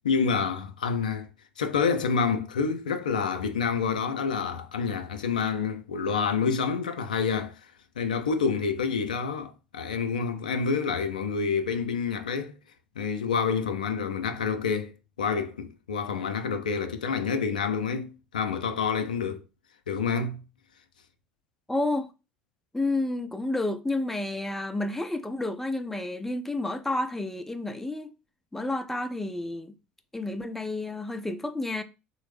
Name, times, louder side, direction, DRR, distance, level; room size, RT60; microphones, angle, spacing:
voice 1, 0.0-1.3 1.6-7.6 8.0-12.6 13.0-19.4 19.9-20.4, left 5 dB, 85° left, 0.3 m, -28 dB
voice 2, 21.7-22.1 22.7-28.1 28.5-29.7 30.1-31.8, left 2 dB, 5° left, 0.4 m, -30 dB
3.1 x 2.0 x 3.2 m
hypercardioid pair, 70°, 4 cm